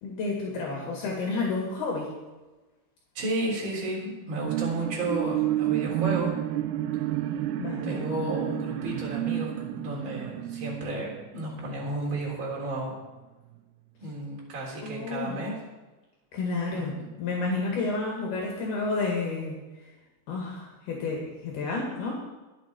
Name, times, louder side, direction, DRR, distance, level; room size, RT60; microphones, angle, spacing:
voice 1, 0.0-2.1 7.6-8.1 14.8-15.4 16.3-19.6 20.3-22.1, left 3 dB, 65° left, -2 dB, 3.8 m, -30 dB
voice 2, 3.1-6.3 7.8-12.9 14.0-15.6 16.7-16.9, right 1 dB, 30° right, -3 dB, 3.8 m, -32 dB
sound 1, 4.2-12.0 12.5-12.6, right 14 dB, 80° right, 2.6 m, -30 dB
22.5 x 7.7 x 4.5 m, 1.2 s
omnidirectional pair, 5.2 m